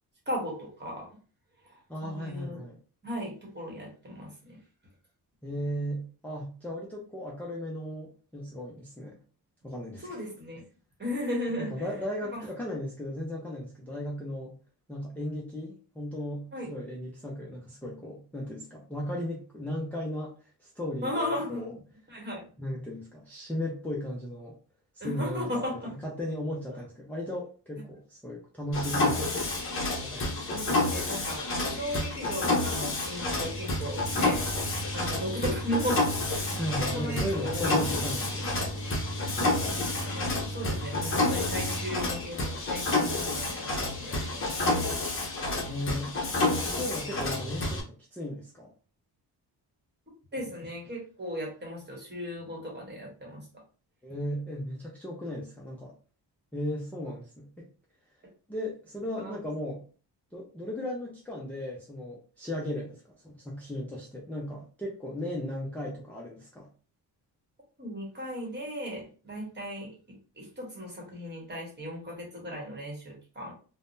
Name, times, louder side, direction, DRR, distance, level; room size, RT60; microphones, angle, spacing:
voice 1, 0.3-1.1 1.6-2.6 3.0-4.6 10.0-10.6 11.0-12.0 12.3-12.5 16.5-16.7 21.0-21.8 22.1-22.4 25.0-25.9 26.7-26.8 30.5-34.4 34.9-37.7 38.1-38.3 40.0-44.9 50.3-53.5 59.1-59.4 67.8-73.5, equal, 25° right, -1 dB, 1.2 m, -36 dB
voice 2, 1.9-2.8 5.4-9.2 9.6-10.1 11.6-14.6 14.9-20.3 20.6-21.7 22.6-24.6 25.0-29.5 30.0-30.6 36.6-38.5 45.7-46.1 46.7-48.7 54.0-55.9 56.5-57.7 58.5-59.8 60.3-66.7, left 1 dB, 5° left, -4 dB, 0.5 m, -36 dB
Mechanisms, 28.7-47.8, left 2 dB, 30° left, 0.8 m, -29 dB
3.5 x 2.1 x 2.6 m, 0.39 s
wide cardioid pair, 160°, 40 cm